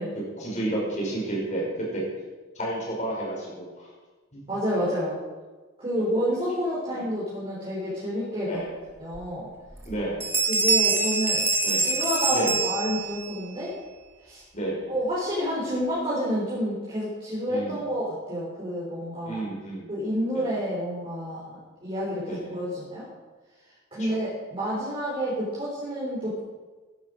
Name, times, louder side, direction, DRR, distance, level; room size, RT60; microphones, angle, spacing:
voice 1, 0.4-1.7 1.9-2.0 2.6-3.9 4.3-4.4 6.0-6.1 8.5-8.7 9.8-10.3 11.6-11.9 12.3-12.6 14.5-14.9 17.5-17.8 19.3-19.9 20.3-20.4 22.2-22.5 24.0-24.2, right 1 dB, 35° left, -3 dB, 5.3 m, -31 dB
voice 2, 4.5-5.2 5.8-8.6 9.0-9.5 10.5-11.4 11.7-13.7 14.2-14.4 14.9-19.4 19.9-23.1 23.9-26.4, equal, 25° right, -7 dB, 4.0 m, -29 dB
Bell, 9.1-9.2 9.7-9.9 10.2-13.3, right 3 dB, 10° right, 1.7 m, -25 dB
15.0 x 11.0 x 5.2 m, 1.3 s
head